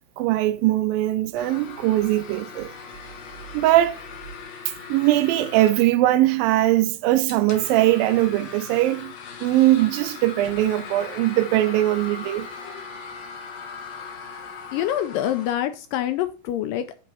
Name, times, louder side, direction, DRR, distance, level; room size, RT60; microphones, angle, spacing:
voice 1, 0.2-2.7 3.5-4.0 4.9-9.1 9.4-12.5, right 15 dB, 80° right, 2.3 m, -20 dB
sound 1, 1.3-15.5, left 5 dB, 65° left, 1.8 m, -39 dB
voice 2, 14.7-17.1, left 11 dB, 80° left, 2.0 m, -26 dB
8.1 x 4.2 x 5.4 m
omnidirectional pair, 4.2 m